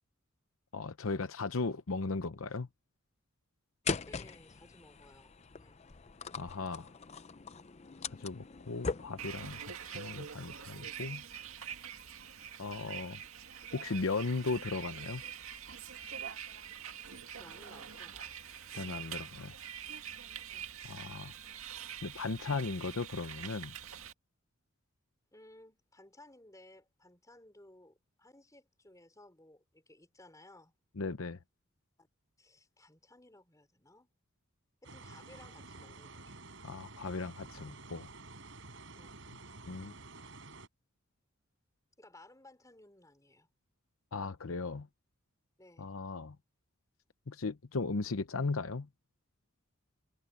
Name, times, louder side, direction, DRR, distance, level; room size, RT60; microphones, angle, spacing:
voice 1, 0.7-2.7 6.4-6.9 8.2-11.2 12.6-13.2 13.7-15.2 18.8-19.5 20.8-21.3 22.0-23.7 31.0-31.4 36.6-38.1 39.7-39.9 44.1-44.9 45.8-46.4 47.3-48.9, left 3 dB, 75° left, 0.8 m, -37 dB
sound 1, 3.9-9.6, left 4 dB, 30° left, 0.5 m, -41 dB
voice 2, 4.1-5.8 17.4-18.4 18.7-18.9 20.5-20.7 25.3-30.7 32.0-32.1 32.4-34.1 34.8-36.4 38.9-39.2 42.0-43.5 45.6-45.9, left 1 dB, 15° left, 4.6 m, -58 dB
Bus, 9.2-24.1, right 8 dB, 80° right, 2.0 m, -45 dB
sound 2, 34.8-40.7, right 3 dB, 60° right, 5.7 m, -51 dB
head